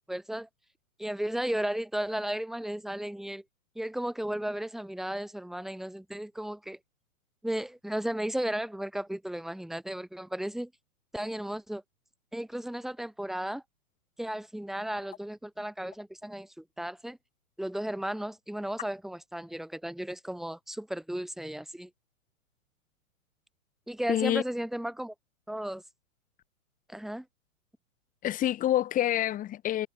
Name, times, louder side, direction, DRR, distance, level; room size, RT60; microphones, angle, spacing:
voice 1, 0.1-0.5 1.0-3.4 3.7-6.8 7.4-10.7 11.1-11.8 12.3-13.6 14.2-17.2 17.6-21.9 23.9-25.1 25.5-25.8 26.9-27.3, right 1 dB, ahead, 2.8 m, -34 dB
voice 2, 24.1-24.4 28.2-29.9, left 12 dB, 20° left, 3.2 m, -27 dB
figure-of-eight pair, 115°, 43 cm